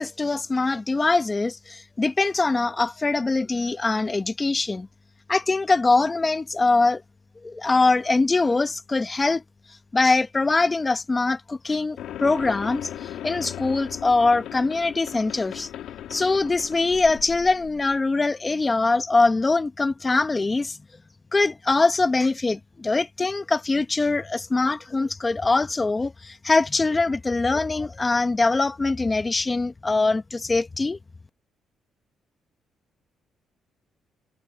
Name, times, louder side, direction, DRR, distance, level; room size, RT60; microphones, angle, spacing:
voice 1, 0.0-4.9 5.3-7.0 7.4-9.4 9.9-12.9 13.2-15.7 16.1-20.8 21.3-31.0, left 3 dB, 25° left, 1.4 m, -23 dB
sound 1, 12.0-18.0, left 11 dB, 80° left, 1.9 m, -37 dB
cardioid pair, 90°, 0 cm